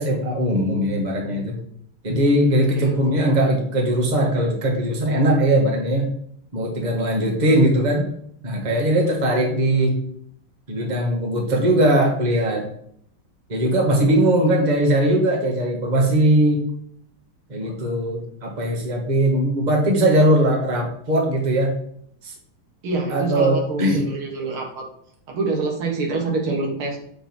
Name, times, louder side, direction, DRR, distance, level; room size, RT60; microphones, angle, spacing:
voice 1, 0.0-1.6 2.0-6.1 6.5-8.1 8.4-10.0 10.7-12.6 13.5-16.7 17.5-21.8 22.2-22.3 23.1-24.1, right 1 dB, 20° right, -1 dB, 1.5 m, -20 dB
voice 2, 22.8-24.9 25.3-27.0, right 3 dB, 80° right, 0 dB, 2.5 m, -26 dB
7.5 x 5.4 x 4.5 m, 0.68 s
omnidirectional pair, 2.4 m